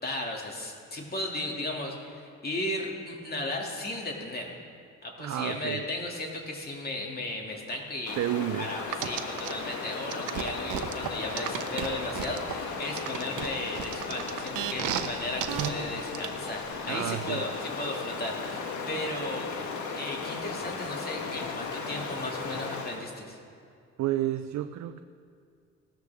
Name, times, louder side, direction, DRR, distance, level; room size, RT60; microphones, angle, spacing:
voice 1, 0.0-4.6 5.0-8.2 8.6-17.5 17.8-19.5 20.0-23.4, left 1 dB, 30° left, 0 dB, 2.5 m, -35 dB
voice 2, 5.2-5.9 8.2-8.8 16.9-17.5 24.0-25.0, right 13 dB, 65° right, 9 dB, 0.5 m, -31 dB
Stream, 8.1-23.1, left 4 dB, 75° left, 1.5 m, -36 dB
sound 1, 8.9-9.5 10.1-12.5 13.0-15.1 15.4-15.7 16.1-16.3, right 11 dB, 85° right, 0.9 m, -32 dB
18.0 x 13.0 x 3.6 m, 2.3 s
cardioid pair, 90°, 30 cm